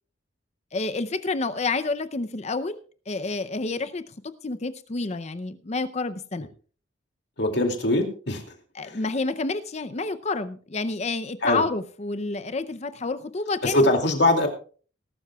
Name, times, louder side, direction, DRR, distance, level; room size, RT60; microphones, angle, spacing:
voice 1, 0.7-2.8 3.1-6.5 8.7-13.8, left 3 dB, 35° left, 12 dB, 0.6 m, -29 dB
voice 2, 7.4-8.4 8.8-9.0 11.4-11.6 13.6-14.5, left 1 dB, 60° left, 4 dB, 2.5 m, -22 dB
19.5 x 12.5 x 2.3 m, 0.40 s
head